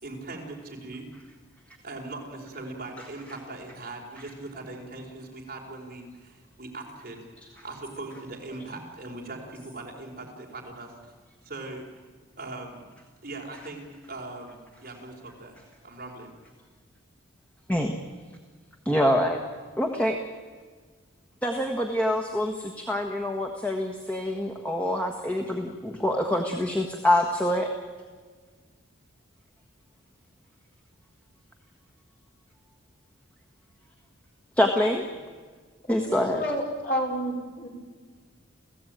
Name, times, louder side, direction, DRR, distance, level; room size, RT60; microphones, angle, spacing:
voice 1, 0.0-1.1 1.8-11.1 11.4-11.9 12.4-12.8 13.2-15.6 15.8-16.3, right 2 dB, 45° right, 0 dB, 4.6 m, -40 dB
voice 2, 18.8-19.4 19.8-20.2 21.4-27.7 34.6-35.0 35.9-36.4, left 1 dB, 5° left, 3 dB, 1.4 m, -25 dB
voice 3, 36.1-37.7, equal, 45° left, -1 dB, 5.3 m, -30 dB
29.5 x 16.0 x 9.2 m, 1.5 s
head